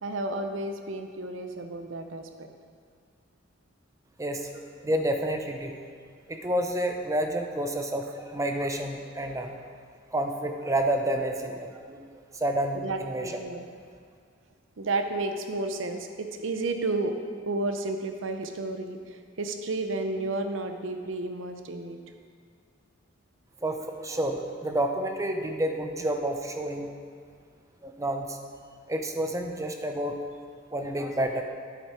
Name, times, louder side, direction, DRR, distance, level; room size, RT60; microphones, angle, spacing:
voice 1, 0.0-2.5 12.7-13.0 13.4-13.6 14.8-17.1 17.5-22.0, right 2 dB, 70° right, 6 dB, 0.8 m, -32 dB
voice 2, 4.2-5.7 6.3-9.5 10.1-12.0 12.3-13.4 23.6-26.9 27.8-28.4 28.9-30.2 30.7-31.4, right 1 dB, 15° right, 4 dB, 0.7 m, -29 dB
9.3 x 8.2 x 4.4 m, 2.1 s
head